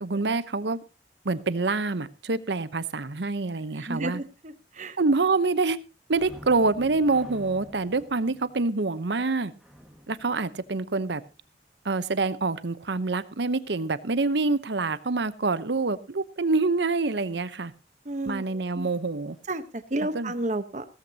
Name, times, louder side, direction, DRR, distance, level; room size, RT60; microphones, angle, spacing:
voice 1, 0.0-0.8 1.2-4.2 5.0-5.8 6.1-9.5 10.1-11.2 11.8-17.7 18.3-19.4 20.1-20.3, right 3 dB, 75° right, 15 dB, 0.8 m, -26 dB
voice 2, 3.8-5.0 18.0-18.9 19.5-20.8, right 1 dB, 40° right, 9 dB, 1.0 m, -32 dB
sound 1, 6.1-11.5 18.8-19.0 19.3-19.5, equal, ahead, 1.7 m, -49 dB
16.5 x 14.0 x 2.8 m, 0.29 s
head